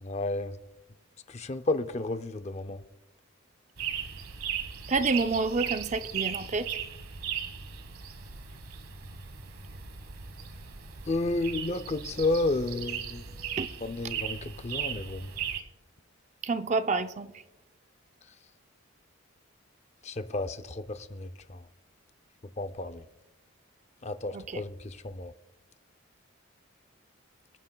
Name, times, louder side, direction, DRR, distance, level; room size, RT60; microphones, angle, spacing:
voice 1, 0.0-0.6 1.3-2.8 11.1-13.2 13.8-15.3 20.0-21.7 22.6-23.0 24.0-25.3, left 2 dB, 30° left, 0.5 m, -32 dB
sound 1, 3.8-15.6, right 8 dB, 85° right, 1.3 m, -37 dB
voice 2, 4.9-6.7 13.6-13.7 16.4-17.3 24.3-24.6, right 3 dB, 35° right, 0.5 m, -28 dB
26.5 x 9.5 x 2.3 m
head